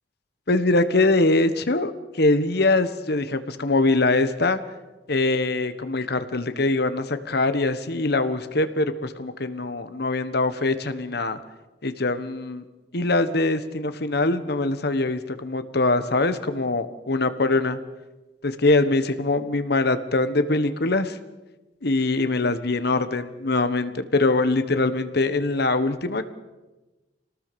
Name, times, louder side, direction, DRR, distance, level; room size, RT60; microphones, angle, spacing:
voice 1, 0.5-4.6 5.1-11.4 11.8-12.6 12.9-17.8 18.4-21.2 21.8-26.3, left 2 dB, 60° left, 11 dB, 1.4 m, -23 dB
26.0 x 19.0 x 7.0 m, 1.1 s
head